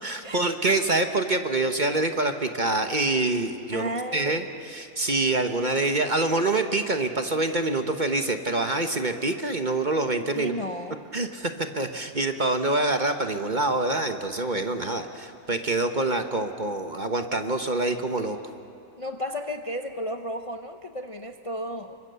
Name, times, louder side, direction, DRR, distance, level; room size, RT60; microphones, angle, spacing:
voice 1, 0.0-10.5 11.1-18.4, right 2 dB, 35° right, 6 dB, 1.1 m, -26 dB
voice 2, 3.7-4.3 10.3-11.0 19.0-22.0, equal, 30° left, 6 dB, 0.7 m, -33 dB
28.5 x 24.0 x 6.9 m, 2.5 s
omnidirectional pair, 1.6 m